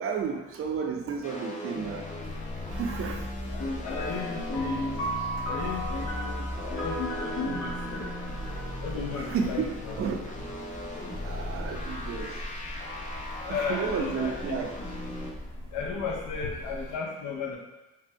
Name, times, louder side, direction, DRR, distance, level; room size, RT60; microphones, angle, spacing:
voice 1, 0.0-2.1 2.6-3.5 9.1-9.5 10.0-10.2 11.2-12.4 12.9-13.0 13.5-14.7, right 6 dB, 50° right, 3 dB, 0.5 m, -32 dB
sound 1, 1.2-15.3, left 1 dB, 25° left, 0.5 m, -38 dB
sound 2, 2.2-17.0, left 1 dB, 40° left, 1.1 m, -41 dB
voice 2, 3.5-5.0 5.5-8.1 8.8-10.0 13.4-14.6 15.7-17.6, left 4 dB, 80° left, -1 dB, 0.6 m, -34 dB
sound 3, 3.8-9.6, equal, 60° left, 1.3 m, -37 dB
3.4 x 2.1 x 2.6 m, 1.0 s
cardioid pair, 90°, 30 cm